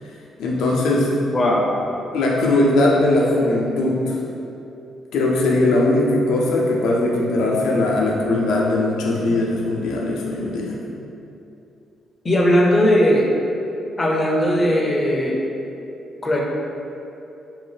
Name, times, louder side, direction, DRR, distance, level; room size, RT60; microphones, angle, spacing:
voice 1, 0.4-1.1 2.1-4.2 5.1-10.8, left 2 dB, 85° left, -3 dB, 0.4 m, -19 dB
voice 2, 1.3-1.6 12.2-13.3 14.0-15.4 16.2-16.4, equal, 25° left, -2 dB, 0.5 m, -18 dB
2.6 x 2.1 x 3.2 m, 2.8 s
cardioid pair, 90°, 0 cm